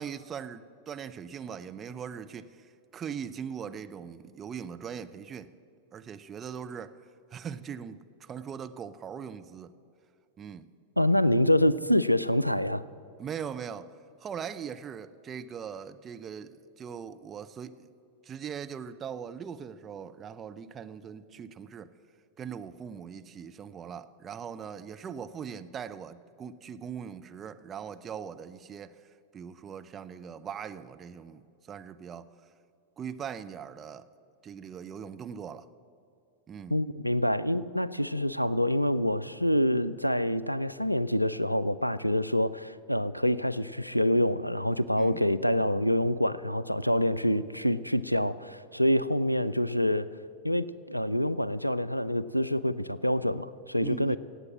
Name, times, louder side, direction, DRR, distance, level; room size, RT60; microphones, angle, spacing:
voice 1, 0.0-5.5 5.9-6.9 7.3-9.7 10.4-10.7 13.2-13.9 14.2-17.9 18.2-21.9 22.4-29.0 29.3-32.3 33.0-34.0 34.4-35.7 36.5-36.8 45.0-45.2 53.8-54.2, right 7 dB, 25° right, 10 dB, 0.6 m, -40 dB
voice 2, 11.0-12.8 36.7-50.1 50.4-54.2, equal, 90° left, 17 dB, 0.4 m, -26 dB
17.5 x 8.1 x 7.3 m, 2.4 s
figure-of-eight pair, 90°, 0 cm